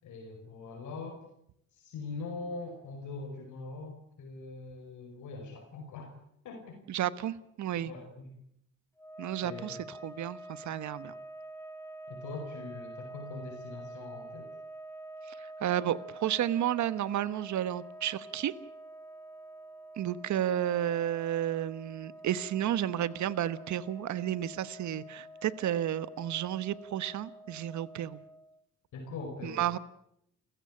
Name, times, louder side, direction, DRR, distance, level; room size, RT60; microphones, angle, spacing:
voice 1, 0.0-1.2 1.7-6.1 6.4-6.8 7.8-8.3 9.4-9.8 12.1-14.5 28.9-29.6, left 3 dB, 75° left, 3 dB, 5.1 m, -42 dB
voice 2, 6.9-7.9 9.2-9.8 10.0-11.1 15.4-18.5 20.0-28.2 29.4-29.8, right 11 dB, 70° right, 16 dB, 1.3 m, -32 dB
sound 1, 9.0-28.6, right 1 dB, 10° left, 2.0 m, -47 dB
29.5 x 15.5 x 8.8 m, 0.74 s
cardioid pair, 90°, 30 cm